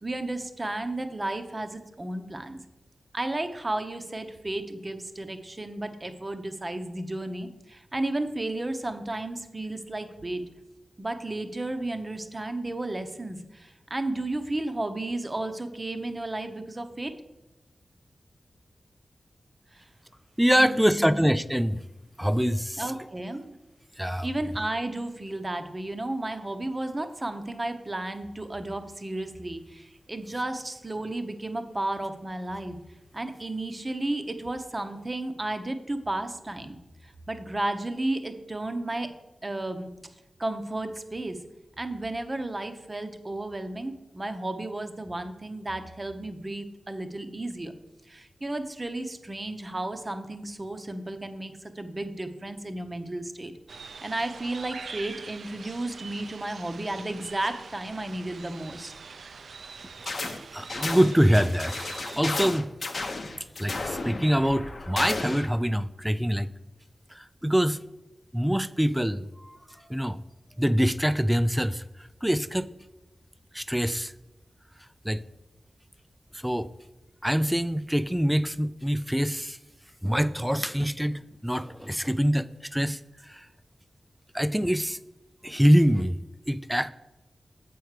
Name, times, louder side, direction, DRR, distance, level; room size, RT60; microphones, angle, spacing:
voice 1, 0.0-2.6 3.1-10.4 11.0-17.1 19.7-19.8 20.6-21.2 22.8-23.6 24.2-32.8 33.1-36.8 37.0-39.1 39.4-39.9 40.4-41.4 41.8-47.7 48.1-53.5 54.0-58.9, right 2 dB, 25° right, 8 dB, 0.7 m, -33 dB
voice 2, 20.4-21.8 22.2-22.9 24.0-24.3 60.5-61.9 62.2-62.7 63.6-66.5 67.1-67.8 68.3-69.6 69.9-70.2 70.6-71.8 72.2-72.7 73.5-74.1 75.0-75.2 76.3-76.7 77.2-79.6 80.0-83.5 84.3-85.0 85.4-86.9, equal, 5° right, 15 dB, 0.3 m, -25 dB
sound 1, 53.7-62.2, right 5 dB, 85° right, 0.4 m, -44 dB
sound 2, 60.1-60.4 60.7-65.5, left 3 dB, 50° left, 0.7 m, -33 dB
7.7 x 4.6 x 6.5 m, 0.99 s
wide cardioid pair, 125°, 0 cm